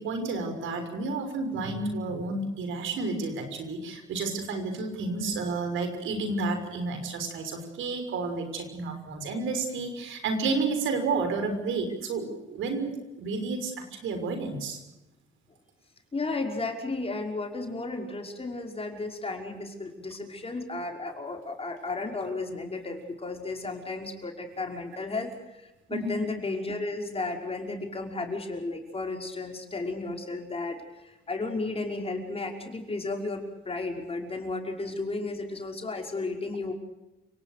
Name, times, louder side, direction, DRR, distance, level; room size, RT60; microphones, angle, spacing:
voice 1, 0.0-12.9 13.2-13.7 14.0-14.8 25.9-26.2, right 3 dB, 80° right, 6 dB, 6.3 m, -31 dB
voice 2, 16.1-36.7, left 3 dB, 30° left, 3 dB, 5.6 m, -34 dB
30.0 x 18.5 x 6.8 m, 0.99 s
cardioid pair, 90°, 20 cm